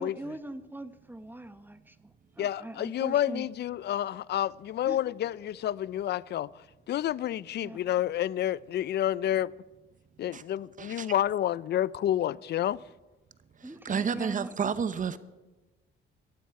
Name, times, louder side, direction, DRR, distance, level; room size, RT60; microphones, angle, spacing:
voice 1, 0.0-3.5 4.9-5.0 7.6-7.8 13.6-14.5, right 1 dB, 10° right, 0.9 m, -41 dB
voice 2, 2.4-6.5 6.9-9.5 10.2-12.8, left 12 dB, 60° left, 0.4 m, -29 dB
voice 3, 10.8-11.1 13.6-15.2, right 6 dB, 40° right, 0.7 m, -31 dB
17.5 x 13.5 x 4.8 m
cardioid pair, 90°, 20 cm